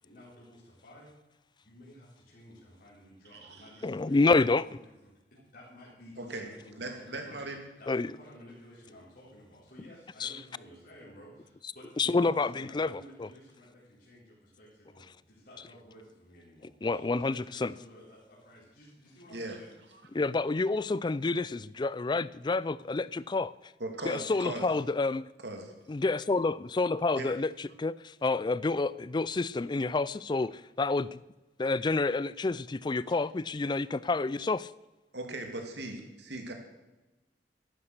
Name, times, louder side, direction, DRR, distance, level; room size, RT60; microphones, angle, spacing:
voice 1, 0.0-1.1 1.6-7.5 7.8-19.7, equal, 55° left, 4.5 m, -53 dB
voice 2, 3.3-3.7 6.2-6.5 6.8-7.6 19.3-19.6 19.9-20.0 23.8-24.7 25.4-25.7 26.1-26.2 27.2-27.3 33.1-33.2 35.1-36.5, right 2 dB, 75° right, 2.8 m, -39 dB
voice 3, 3.8-4.7 7.9-8.1 10.2-10.3 12.0-12.9 13.2-13.3 16.8-17.7 20.1-23.5 24.0-25.3 25.9-31.2 31.6-34.7, left 3 dB, 25° left, 0.4 m, -28 dB
14.0 x 11.5 x 6.6 m
head